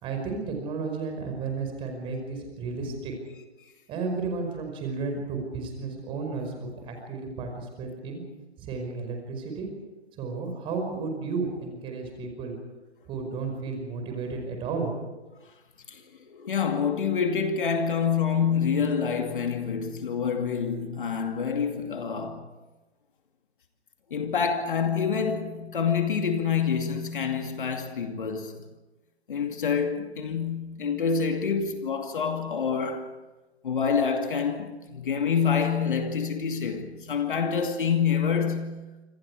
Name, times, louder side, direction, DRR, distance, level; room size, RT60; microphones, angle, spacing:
voice 1, 0.0-3.1 3.9-8.2 8.6-9.7 10.2-12.6 13.1-14.9, right 4 dB, 15° right, 5.2 m, -33 dB
voice 2, 16.3-22.5 24.1-28.6 29.3-33.1 33.6-38.9, left 6 dB, 50° left, 2.5 m, -27 dB
27.5 x 26.5 x 4.8 m
figure-of-eight pair, 140°, 34 cm